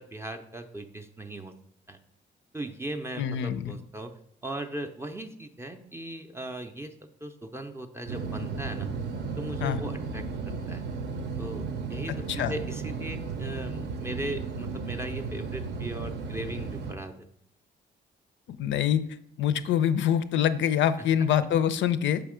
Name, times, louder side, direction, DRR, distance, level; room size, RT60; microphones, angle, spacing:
voice 1, 0.0-1.5 1.9-2.0 2.5-4.2 4.4-6.9 7.2-8.9 9.4-10.8 11.4-17.1 21.0-21.1, right 1 dB, 15° right, 5 dB, 0.4 m, -38 dB
voice 2, 3.2-3.8 9.6-9.8 12.3-12.5 18.6-19.0 19.4-22.2, left 9 dB, 70° left, 13 dB, 0.4 m, -25 dB
sound 1, 8.1-16.9, right 4 dB, 60° right, 0.6 m, -34 dB
5.8 x 3.4 x 4.9 m, 0.71 s
cardioid pair, 90°, 20 cm